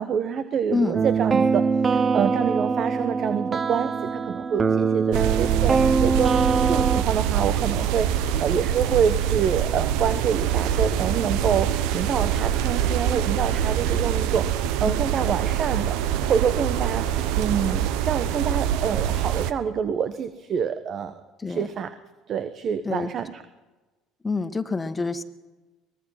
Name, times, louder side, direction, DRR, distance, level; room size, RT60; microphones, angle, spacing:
voice 1, 0.0-16.0 16.3-17.0 17.3-21.1 21.4-21.9 22.3-23.4, right 7 dB, 45° right, 11 dB, 1.1 m, -27 dB
sound 1, 0.9-7.0, right 5 dB, 30° right, 0.7 m, -23 dB
sound 2, 5.1-19.5, right 10 dB, 65° right, 1.0 m, -24 dB
voice 2, 24.2-25.2, left 3 dB, 20° left, 8 dB, 1.7 m, -26 dB
23.5 x 20.0 x 5.8 m, 1.2 s
hypercardioid pair, 65°, 0 cm